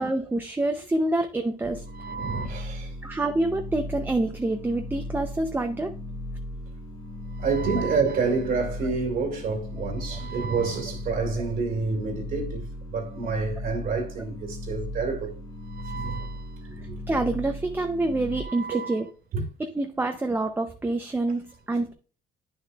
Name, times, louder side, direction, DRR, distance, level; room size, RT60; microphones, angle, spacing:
voice 1, 0.0-1.8 3.0-5.9 8.8-8.9 10.1-10.2 11.4-11.5 16.8-19.1 19.6-21.9, right 2 dB, 10° right, 0.6 m, -27 dB
sound 1, 1.6-18.4, left 1 dB, 25° left, 1.1 m, -37 dB
voice 2, 1.9-2.9 7.3-15.3 15.6-17.0 18.3-19.0 19.3-19.4, right 4 dB, 60° right, 2.0 m, -29 dB
9.6 x 6.5 x 2.3 m
cardioid pair, 110°, 17 cm